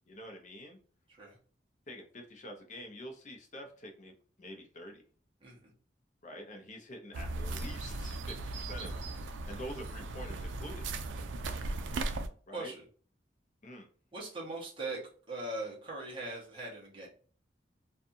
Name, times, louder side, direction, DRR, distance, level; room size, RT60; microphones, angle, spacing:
voice 1, 0.1-0.8 1.9-4.1 4.4-5.0 6.2-9.0 9.5-10.9 12.5-12.7 13.6-13.9, equal, 40° left, 2 dB, 0.6 m, -46 dB
voice 2, 5.4-5.7 12.5-12.8 14.1-15.0 15.3-17.1, right 2 dB, 30° right, -3 dB, 0.9 m, -40 dB
sound 1, 7.1-12.3, right 2 dB, 80° right, 0.4 m, -37 dB
2.6 x 2.3 x 2.6 m, 0.42 s
head